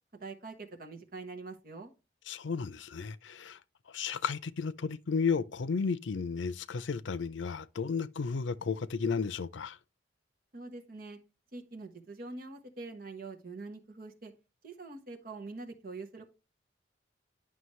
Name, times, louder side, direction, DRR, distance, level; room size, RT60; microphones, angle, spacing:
voice 1, 0.1-1.9 10.5-11.2 11.5-14.3 14.6-16.3, right 3 dB, 50° right, 1.2 m, -44 dB
voice 2, 2.3-3.6 3.9-9.8, left 5 dB, 90° left, 0.5 m, -33 dB
9.6 x 6.1 x 3.1 m
head